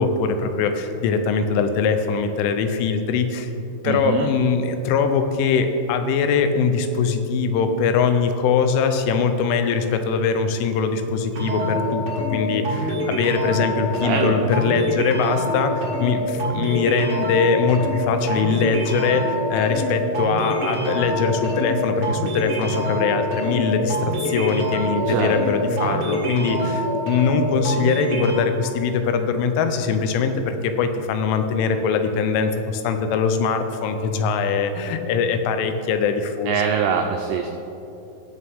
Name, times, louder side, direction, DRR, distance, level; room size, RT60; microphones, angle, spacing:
voice 1, 0.0-3.5 3.8-36.5, left 5 dB, 90° left, 8 dB, 3.3 m, -22 dB
voice 2, 3.8-4.3 14.0-14.9 25.1-25.4 25.8-26.0 36.5-37.5, right 7 dB, 90° right, 3 dB, 2.3 m, -24 dB
sound 1, 11.3-28.3, equal, 75° right, 1.1 m, -25 dB
19.5 x 6.7 x 3.6 m, 3.0 s
omnidirectional pair, 5.5 m